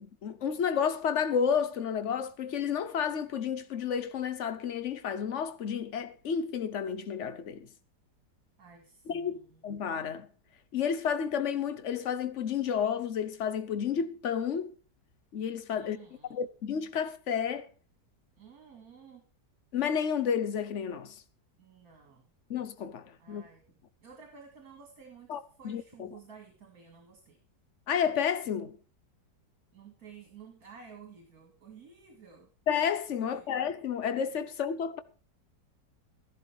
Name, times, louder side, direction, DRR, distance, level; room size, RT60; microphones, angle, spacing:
voice 1, 0.0-7.7 9.1-9.4 9.6-10.3 10.7-14.7 15.3-16.0 16.3-17.7 19.7-21.2 22.5-23.4 25.3-25.4 25.6-26.1 27.9-28.8 32.7-35.0, left 7 dB, 50° left, 1.1 m, -31 dB
voice 2, 8.6-9.7 15.7-16.4 18.4-19.2 21.6-22.3 23.2-23.6 24.0-27.4 29.7-32.5 33.2-33.6, right 6 dB, 60° right, 2.8 m, -53 dB
13.5 x 11.5 x 4.7 m
omnidirectional pair, 1.8 m